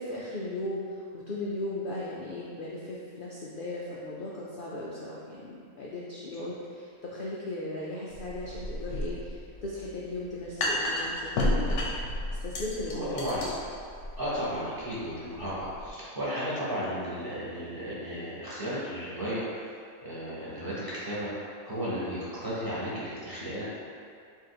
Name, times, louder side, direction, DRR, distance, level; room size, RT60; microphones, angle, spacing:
voice 1, 0.0-11.9 12.4-13.1, left 1 dB, 85° left, -5 dB, 0.4 m, -37 dB
sound 1, 8.1-15.9, left 1 dB, 60° left, 0.9 m, -32 dB
voice 2, 12.9-13.5 14.2-19.4 20.0-21.3 21.6-23.6, equal, 15° right, -10 dB, 1.1 m, -34 dB
3.7 x 2.7 x 4.7 m, 2.3 s
omnidirectional pair, 1.5 m